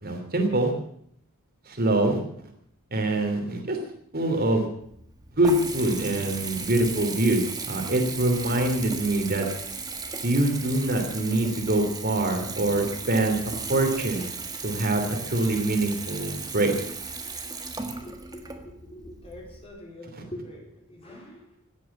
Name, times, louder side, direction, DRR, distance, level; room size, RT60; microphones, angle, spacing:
voice 1, 0.0-0.7 1.7-2.2 2.9-3.8 4.1-4.7 5.4-9.5 10.2-14.3 14.6-16.7 20.1-20.2, right 2 dB, 45° right, 4 dB, 3.0 m, -24 dB
Water tap faucet / Bathtub (filling or washing) / Trickle dribble, 4.8-19.7, right 4 dB, 20° right, 1.6 m, -36 dB
voice 2, 17.9-21.7, equal, 25° left, -1 dB, 4.0 m, -44 dB
17.0 x 9.1 x 8.5 m, 0.68 s
head